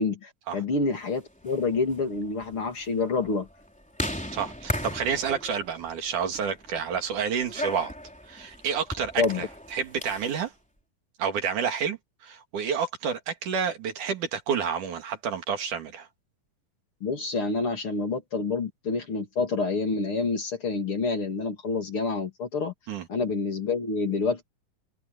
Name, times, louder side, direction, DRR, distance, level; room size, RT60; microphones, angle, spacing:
voice 1, 0.0-3.5 9.2-9.5 17.0-22.7 23.1-24.5, left 3 dB, 40° left, 3.5 m, -28 dB
sound 1, 1.3-10.4, equal, ahead, 3.2 m, -37 dB
voice 2, 4.3-7.9 8.3-10.5 11.2-16.1 22.9-23.1, right 7 dB, 70° right, 3.7 m, -29 dB
omnidirectional pair, 3.8 m